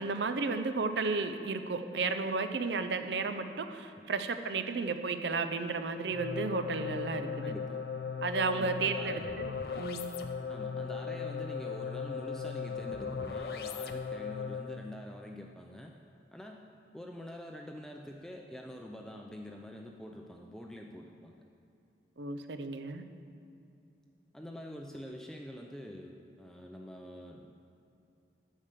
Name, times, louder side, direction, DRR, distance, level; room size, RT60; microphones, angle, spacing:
voice 1, 0.0-7.5 8.2-10.1 22.2-23.0, right 4 dB, 85° right, 9 dB, 0.6 m, -33 dB
sound 1, 6.1-14.9, left 6 dB, 60° left, 0.5 m, -38 dB
voice 2, 7.4-7.8 8.5-9.3 10.5-15.9 16.3-16.7 16.9-21.3 24.3-27.5, equal, 5° left, 1 dB, 0.4 m, -46 dB
8.9 x 6.4 x 6.7 m, 2.6 s
head